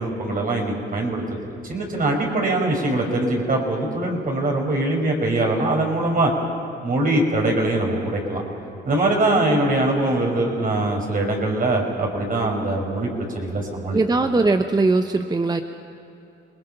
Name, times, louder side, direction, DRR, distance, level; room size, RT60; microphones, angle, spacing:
voice 1, 0.0-6.3 6.8-8.4 8.8-13.1 13.3-14.0, right 2 dB, 45° right, 0 dB, 5.3 m, -22 dB
voice 2, 13.9-15.6, right 3 dB, 20° right, 7 dB, 0.9 m, -20 dB
27.5 x 20.5 x 5.7 m, 2.9 s
cardioid pair, 90°, 20 cm